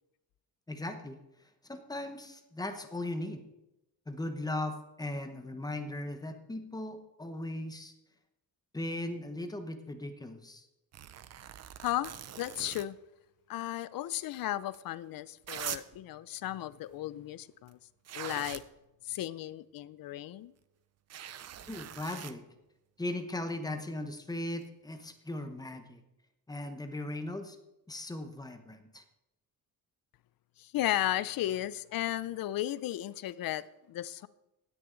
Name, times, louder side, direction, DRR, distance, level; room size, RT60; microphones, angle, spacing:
voice 1, 0.7-1.2 1.7-3.4 4.1-7.9 8.7-10.6 21.7-22.4 23.0-26.0 26.5-27.6 27.9-29.0, left 1 dB, 10° left, 0.9 m, -38 dB
sound 1, 10.9-12.9 14.7-14.8 15.4-16.0 17.7-17.8 18.1-18.7 21.1-22.3 24.6-24.7, right 10 dB, 45° right, 0.5 m, -42 dB
voice 2, 11.8-13.0 13.5-17.8 18.1-18.6 19.0-20.5 30.6-34.3, left 14 dB, 65° left, 0.5 m, -35 dB
16.0 x 9.9 x 3.9 m
cardioid pair, 175°, 38 cm